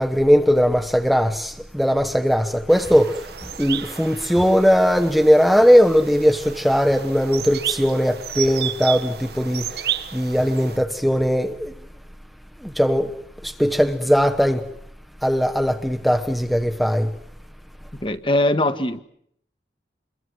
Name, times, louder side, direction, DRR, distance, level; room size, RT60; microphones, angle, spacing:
voice 1, 0.0-11.7 12.6-13.1 13.4-14.7 15.2-17.1, equal, ahead, 1.0 m, -19 dB
sound 1, 2.7-10.8, right 10 dB, 60° right, 1.5 m, -32 dB
voice 2, 18.0-19.0, left 1 dB, 30° left, 1.4 m, -21 dB
28.0 x 22.5 x 8.0 m
head